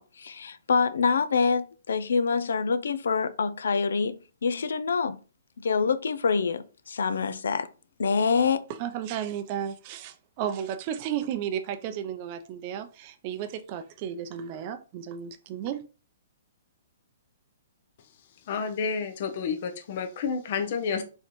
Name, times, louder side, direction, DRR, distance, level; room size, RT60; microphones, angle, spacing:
voice 1, 0.0-5.2 5.6-7.7 8.0-8.7, left 5 dB, 85° left, 0.5 m, -26 dB
voice 2, 8.8-15.8, right 9 dB, 35° right, 0.5 m, -33 dB
voice 3, 18.5-21.0, left 5 dB, 50° left, 0.7 m, -30 dB
4.2 x 3.8 x 3.1 m
hypercardioid pair, 155°, 0 cm